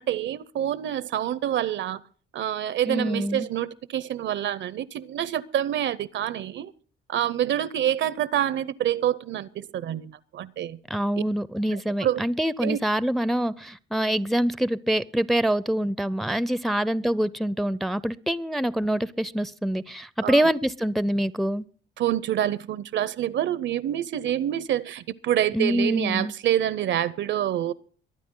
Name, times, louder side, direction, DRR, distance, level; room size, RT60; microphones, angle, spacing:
voice 1, 0.0-2.0 2.3-6.7 7.1-10.8 12.0-12.2 12.6-12.8 20.2-20.4 22.0-27.7, right 11 dB, 65° right, 0.6 m, -27 dB
voice 2, 2.9-3.5 10.9-21.6 25.5-26.3, right 1 dB, ahead, 0.5 m, -25 dB
23.5 x 9.2 x 3.8 m
cardioid pair, 90°, 20 cm